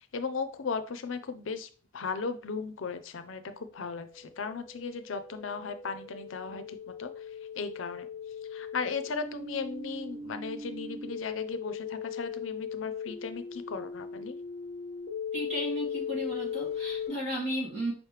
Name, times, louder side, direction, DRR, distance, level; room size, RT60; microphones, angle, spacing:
voice 1, 0.0-7.2 7.6-8.1 8.5-14.4, left 5 dB, 80° left, 10 dB, 0.5 m, -36 dB
sound 1, 3.8-17.1, left 6 dB, 35° left, 1.1 m, -39 dB
voice 2, 15.3-17.9, equal, 35° right, -4 dB, 2.0 m, -34 dB
5.1 x 3.2 x 3.2 m, 0.38 s
head